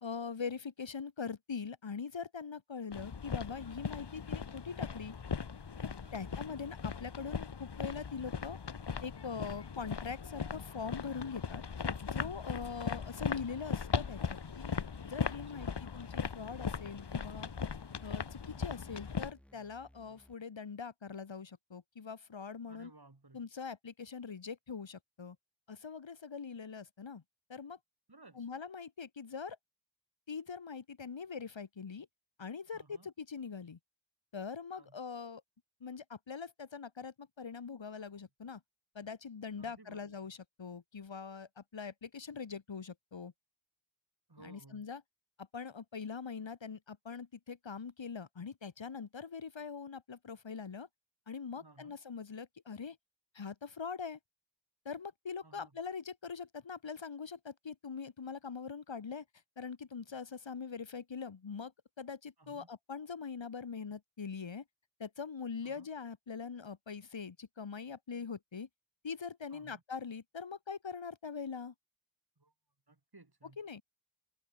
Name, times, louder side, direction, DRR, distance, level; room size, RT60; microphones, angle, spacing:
voice 1, 0.0-5.1 5.8-8.6 9.0-11.6 12.0-14.8 15.0-17.5 18.0-22.9 23.3-25.4 25.7-27.2 27.5-27.8 28.4-29.6 30.3-32.1 32.4-33.8 34.3-35.4 35.8-38.6 38.9-43.3 44.4-45.0 45.4-50.9 51.3-53.0 53.3-54.2 54.8-59.2 59.6-61.7 62.0-64.6 65.0-68.7 69.0-71.7 73.6-73.8, left 5 dB, 75° left, 1.4 m, -43 dB
sound 1, 2.9-19.3, left 6 dB, 60° left, 1.1 m, -39 dB
voice 2, 6.0-6.4 12.6-12.8 15.3-15.8 22.7-23.5 28.1-28.5 32.7-33.1 34.8-35.0 38.1-38.2 39.6-40.2 44.3-44.9 51.6-52.0 55.4-55.8 62.4-62.7 65.6-65.9 69.5-69.8 72.4-72.5 72.9-73.6, right 2 dB, 55° right, 8.0 m, -59 dB
sound 2, 12.8-20.3, equal, 5° left, 5.7 m, -63 dB
wide cardioid pair, 60°, 46 cm